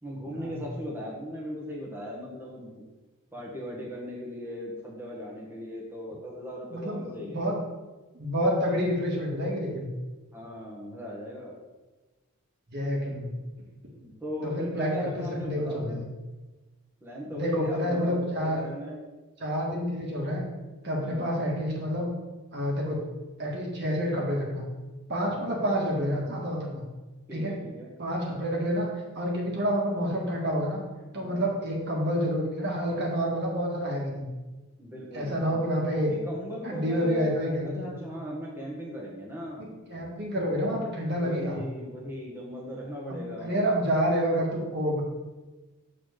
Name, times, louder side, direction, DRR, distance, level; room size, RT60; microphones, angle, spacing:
voice 1, 0.0-2.8 3.3-7.5 10.3-11.6 13.9-16.0 17.0-19.0 20.9-21.3 25.2-25.6 27.3-27.9 31.1-31.5 34.8-35.7 36.0-39.8 41.1-43.7, equal, 10° right, -5 dB, 1.3 m, -38 dB
voice 2, 6.7-7.5 8.1-9.9 12.7-13.4 14.4-16.1 17.3-18.6 19.4-20.4 20.8-22.1 22.5-23.0 23.4-24.6 25.1-26.8 27.3-27.5 28.0-28.9 29.1-30.8 31.1-34.3 35.1-36.1 36.6-37.9 39.6-41.6 43.1-45.0, equal, 50° right, -2 dB, 1.6 m, -28 dB
6.8 x 4.1 x 6.4 m, 1.2 s
head